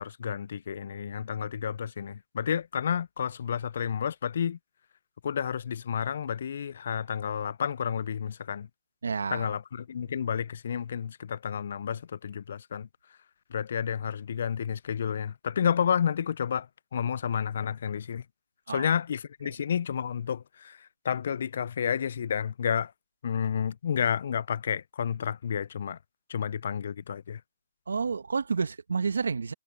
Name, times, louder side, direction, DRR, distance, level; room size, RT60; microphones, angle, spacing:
voice 1, 0.0-4.6 5.2-8.7 9.3-12.9 13.5-16.7 16.9-18.2 18.7-22.9 23.2-26.0 26.3-27.4, left 8 dB, 60° left, 0.3 m, -30 dB
voice 2, 9.0-9.6 18.7-18.9 19.4-19.5 27.9-29.5, right 5 dB, 85° right, 1.3 m, -30 dB
hypercardioid pair, 145°, 0 cm